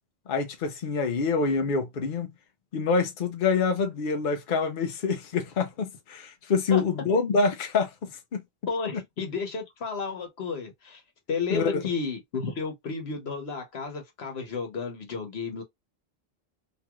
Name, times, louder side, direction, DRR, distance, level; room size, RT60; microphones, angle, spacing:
voice 1, 0.3-2.3 2.7-7.9 8.3-8.4 11.5-11.8, left 4 dB, 60° left, 0.8 m, -26 dB
voice 2, 8.7-11.0 11.3-15.6, left 5 dB, 90° left, 1.3 m, -32 dB
2.9 x 2.4 x 2.9 m
omnidirectional pair, 1.0 m